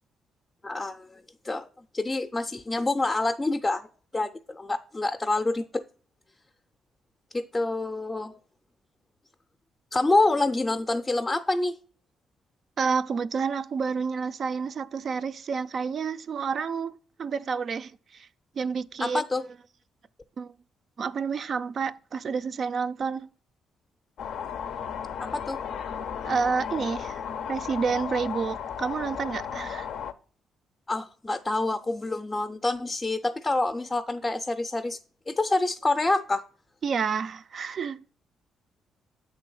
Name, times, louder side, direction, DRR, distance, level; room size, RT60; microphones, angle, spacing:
voice 1, 0.6-1.7 1.9-3.9 4.1-5.8 7.3-8.3 9.9-11.8 19.0-19.4 25.3-25.6 30.9-35.0 35.3-36.4, left 2 dB, 20° left, 0.4 m, -27 dB
voice 2, 12.8-18.3 18.6-19.2 20.4-20.5 21.0-23.3 26.2-27.2 27.5-29.9 36.8-38.0, right 5 dB, 50° right, 0.3 m, -29 dB
sound 1, 24.2-30.1, left 8 dB, 75° left, 0.4 m, -34 dB
7.9 x 3.3 x 5.3 m
cardioid pair, 90°, 0 cm